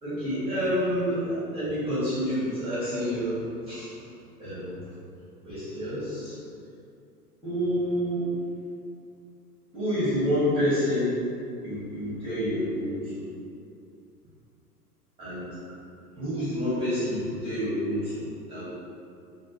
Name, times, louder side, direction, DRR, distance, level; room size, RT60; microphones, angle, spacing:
voice 1, 0.0-3.9 4.4-5.0 5.4-6.4 7.4-8.3 9.7-11.2 11.6-13.3 15.2-15.6 16.2-18.7, equal, 10° right, -13 dB, 0.7 m, -28 dB
2.3 x 2.2 x 2.4 m, 2.4 s
figure-of-eight pair, 95°, 47 cm